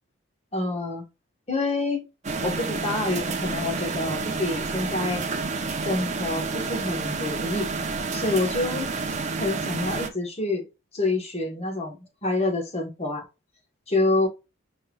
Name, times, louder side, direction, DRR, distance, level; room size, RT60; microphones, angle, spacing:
voice 1, 0.5-1.0 1.5-2.0 2.4-5.2 5.8-7.7 8.1-8.9 9.4-10.6 10.9-13.2 13.9-14.3, left 2 dB, 30° left, 2 dB, 1.1 m, -27 dB
sound 1, 2.2-10.1, right 4 dB, 35° right, 0.5 m, -29 dB
4.5 x 3.4 x 2.2 m, 0.27 s
head